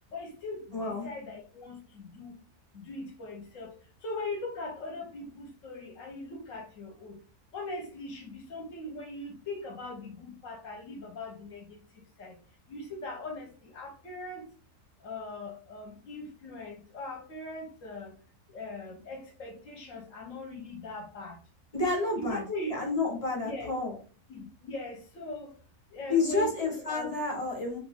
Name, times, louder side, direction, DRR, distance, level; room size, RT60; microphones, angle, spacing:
voice 1, 0.1-2.4 2.7-3.7 4.0-7.2 7.5-11.8 12.2-12.4 12.7-14.5 15.0-18.1 18.5-21.4 22.2-22.8 23.3-23.7 24.3-25.5 25.9-27.1, left 2 dB, 55° left, 1.1 m, -40 dB
voice 2, 0.7-1.1 21.7-22.4 22.7-23.9 26.1-27.8, left 3 dB, 25° left, 1.0 m, -29 dB
2.9 x 2.5 x 3.5 m
omnidirectional pair, 1.7 m